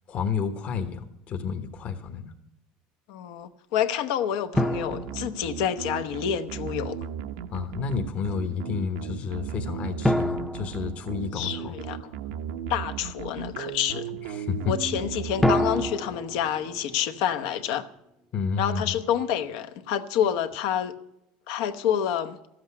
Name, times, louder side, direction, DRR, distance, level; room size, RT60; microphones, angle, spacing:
voice 1, 0.1-2.3 7.5-11.8 14.3-14.7 18.3-18.9, left 6 dB, 40° left, 1.1 m, -30 dB
voice 2, 3.1-7.0 11.3-12.1 12.7-14.1 14.7-17.9 18.6-20.9 21.5-22.4, left 9 dB, 75° left, 1.0 m, -28 dB
sound 1, 4.5-16.4, right 8 dB, 85° right, 0.8 m, -36 dB
sound 2, 4.6-6.2 10.0-11.9 15.4-17.7, left 1 dB, 5° left, 0.6 m, -29 dB
12.5 x 7.9 x 9.7 m
cardioid pair, 135°, 3 cm